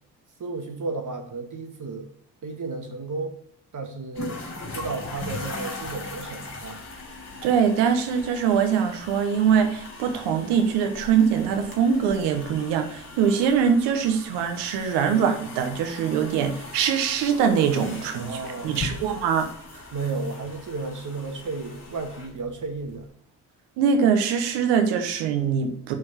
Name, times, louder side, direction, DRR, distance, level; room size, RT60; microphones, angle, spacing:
voice 1, 0.4-2.1 2.4-3.3 3.7-4.4 4.7-6.8 18.1-19.0 19.9-23.1, right 3 dB, 50° right, 3 dB, 2.1 m, -33 dB
sound 1, 4.2-23.0, left 3 dB, 40° left, 3.2 m, -39 dB
voice 2, 7.4-19.5 23.8-25.9, right 7 dB, 90° right, 6 dB, 1.3 m, -23 dB
6.5 x 4.6 x 5.9 m, 0.64 s
supercardioid pair, 65°, 40 cm